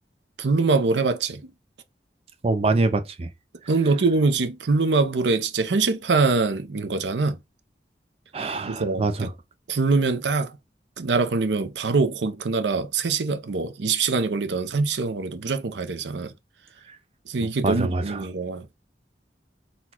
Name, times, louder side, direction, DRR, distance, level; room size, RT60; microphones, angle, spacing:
voice 1, 0.4-1.5 3.7-7.4 8.7-9.3 9.7-10.6 11.0-16.3 17.3-18.7, right 4 dB, 85° right, 0.6 m, -23 dB
voice 2, 2.4-3.3 8.3-9.3 16.9-17.0 17.6-18.2, right 2 dB, 35° right, 0.4 m, -24 dB
4.1 x 2.3 x 4.3 m
head